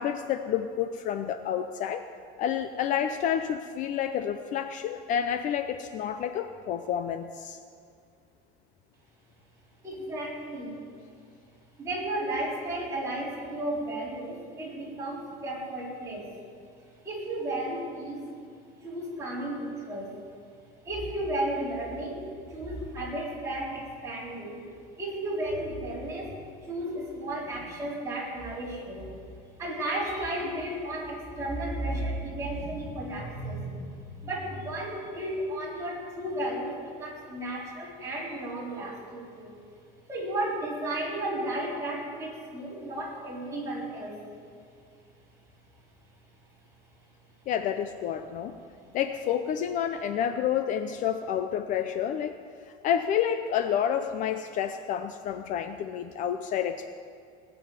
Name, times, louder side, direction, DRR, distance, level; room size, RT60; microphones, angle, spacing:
voice 1, 0.0-2.0 2.4-7.6 47.5-48.5 48.9-52.4 52.8-56.9, left 9 dB, 40° left, 9 dB, 0.6 m, -29 dB
voice 2, 9.8-10.8 11.8-16.3 17.0-18.3 18.8-20.2 20.8-24.7 25.0-29.1 29.6-39.6 40.1-44.3 48.8-48.9, right 1 dB, 15° right, -6 dB, 4.3 m, -34 dB
19.0 x 7.0 x 9.5 m, 2.2 s
cardioid pair, 165°, 19 cm